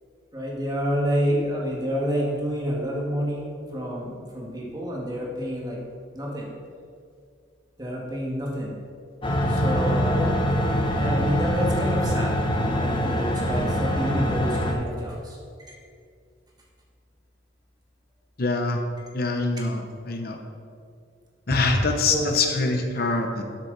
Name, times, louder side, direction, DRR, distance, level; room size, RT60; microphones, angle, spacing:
voice 1, 0.3-5.8 6.1-6.5 7.8-8.7 9.5-10.6 11.0-15.4 19.6-19.7 21.5-22.3, equal, 20° right, -3 dB, 1.9 m, -29 dB
sound 1, 9.2-14.7, equal, 25° left, 1.0 m, -24 dB
voice 2, 18.4-18.8 19.1-20.4 21.5-23.4, left 3 dB, 50° left, 4 dB, 0.8 m, -24 dB
12.5 x 7.7 x 4.0 m, 2.3 s
head